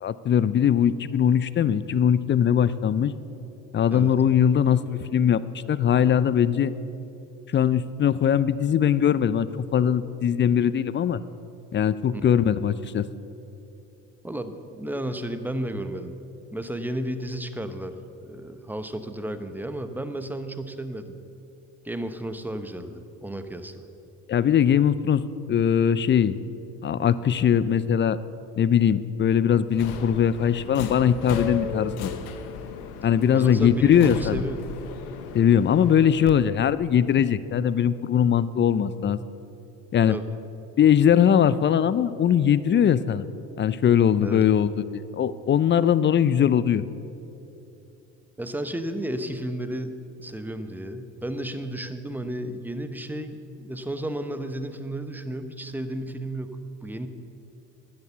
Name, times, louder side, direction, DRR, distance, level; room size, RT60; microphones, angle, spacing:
voice 1, 0.0-3.1 3.7-5.4 5.7-6.7 7.5-11.2 11.7-13.0 24.3-25.2 25.5-26.3 26.8-28.2 28.6-32.1 33.0-34.4 35.3-39.2 39.9-40.2 40.8-43.3 43.6-46.8, left 8 dB, 25° left, 16 dB, 0.4 m, -21 dB
voice 2, 14.2-16.1 16.5-18.0 18.2-21.2 21.8-23.9 33.3-34.7 40.1-40.3 44.2-44.4 48.4-49.9 50.2-57.1, right 1 dB, 5° right, 9 dB, 0.9 m, -33 dB
Subway metro underground, 29.7-36.3, left 6 dB, 85° left, 0.9 m, -35 dB
10.5 x 9.6 x 6.9 m, 2.8 s
hypercardioid pair, 65°, 43 cm